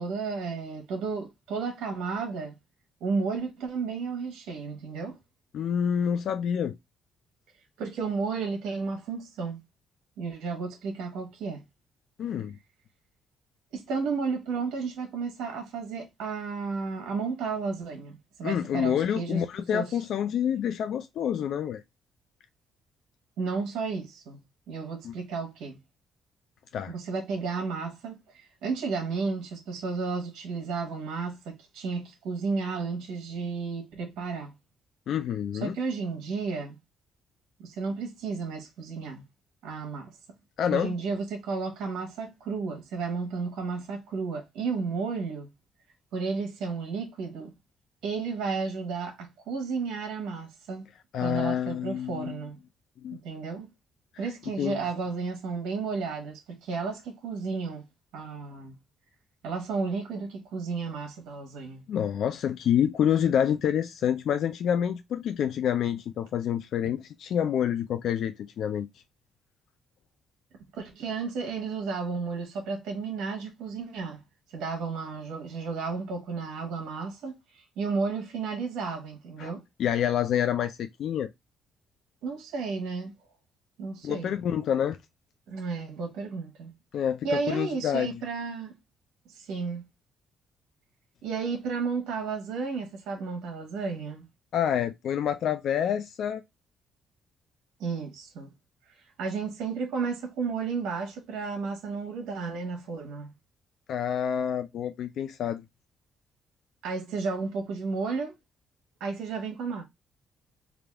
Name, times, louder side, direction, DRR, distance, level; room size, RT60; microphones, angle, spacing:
voice 1, 0.0-2.6 3.0-5.2 7.8-9.6 10.2-11.6 13.7-19.5 19.7-20.0 23.4-25.8 26.9-34.5 35.6-36.7 37.6-39.2 39.6-40.2 40.7-45.5 46.1-47.5 48.0-50.9 51.2-52.6 53.1-53.7 54.2-57.8 58.1-58.8 59.4-61.8 70.7-74.2 74.5-79.6 82.2-83.1 83.8-84.3 85.5-86.7 87.2-88.8 89.3-89.9 91.2-94.3 97.8-98.5 98.9-103.3 106.8-108.3 109.0-109.8, right 4 dB, 85° right, 1.0 m, -33 dB
voice 2, 5.5-6.8 12.2-12.6 18.4-21.8 25.0-25.1 26.7-26.9 35.1-35.8 40.6-40.9 51.1-52.4 53.0-53.2 54.6-54.8 61.9-68.9 79.4-79.5 79.8-81.3 84.0-85.0 86.9-88.1 94.5-96.4 103.9-105.6, left 9 dB, 70° left, 0.3 m, -27 dB
3.5 x 2.4 x 3.3 m
cardioid pair, 90°, 0 cm